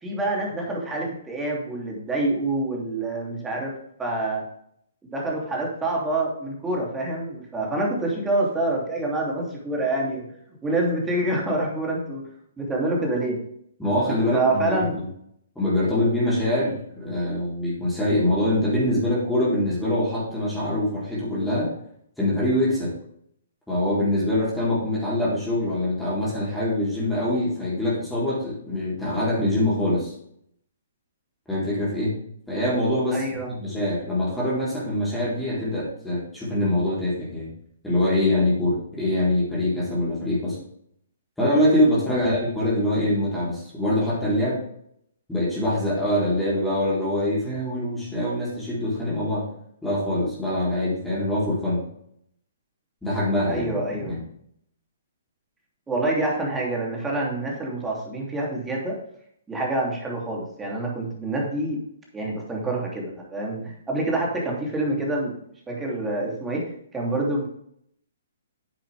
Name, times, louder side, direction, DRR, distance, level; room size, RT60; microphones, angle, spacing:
voice 1, 0.0-3.7 4.0-4.4 5.0-10.2 10.6-12.2 12.6-13.4 14.3-14.9 33.1-33.5 42.2-42.3 53.5-54.2 55.9-59.0 59.5-61.8 62.1-65.3 65.7-66.7 66.9-67.5, right 2 dB, 10° right, -2 dB, 2.9 m, -26 dB
voice 2, 13.8-15.0 15.6-21.7 22.2-22.9 23.7-30.1 31.5-32.1 32.5-37.5 37.8-40.6 41.4-44.6 45.3-49.5 49.8-51.8 53.0-53.7 54.1-54.2, left 1 dB, 5° left, -8 dB, 4.1 m, -24 dB
9.7 x 7.8 x 3.5 m, 0.70 s
figure-of-eight pair, 130°, 0 cm